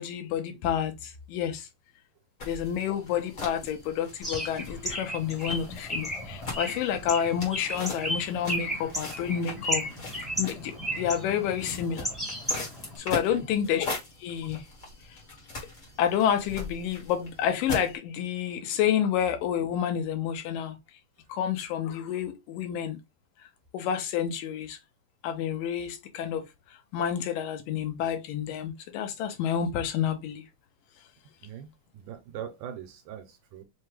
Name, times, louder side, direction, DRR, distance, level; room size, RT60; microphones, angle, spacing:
voice 1, 0.0-1.7 2.4-9.8 10.4-12.1 13.0-13.9 14.2-14.6 16.0-20.8 21.3-23.0 23.7-24.8 25.2-30.4, left 9 dB, 80° left, 2.4 m, -29 dB
sound 1, 2.4-18.0, left 3 dB, 45° left, 1.1 m, -41 dB
Bird, 4.2-13.0, equal, ahead, 0.6 m, -34 dB
voice 2, 13.1-13.5 31.4-31.7 31.9-33.6, right 9 dB, 80° right, 2.0 m, -41 dB
5.7 x 2.2 x 3.1 m
omnidirectional pair, 3.9 m